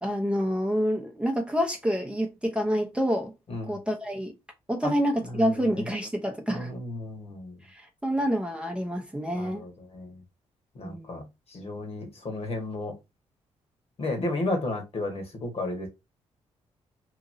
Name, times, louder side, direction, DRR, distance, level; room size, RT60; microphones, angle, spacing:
voice 1, 0.0-3.3 3.7-4.3 4.7-6.7 7.7-9.6 10.8-11.3, equal, 10° right, 0.7 m, -28 dB
voice 2, 5.2-5.9 6.5-7.6 9.3-10.2 10.7-11.2 11.5-12.9 14.0-15.9, left 2 dB, 50° left, 1.3 m, -33 dB
3.0 x 2.6 x 2.6 m
supercardioid pair, 60°, 13 cm